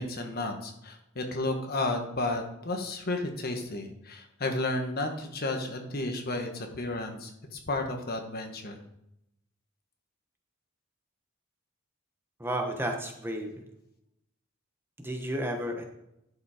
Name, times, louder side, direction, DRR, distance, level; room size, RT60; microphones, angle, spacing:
voice 1, 0.0-8.8, left 2 dB, 50° left, 4 dB, 1.4 m, -32 dB
voice 2, 12.4-13.5 15.0-15.8, right 1 dB, 10° right, 3 dB, 1.0 m, -32 dB
11.0 x 5.3 x 5.0 m, 0.82 s
head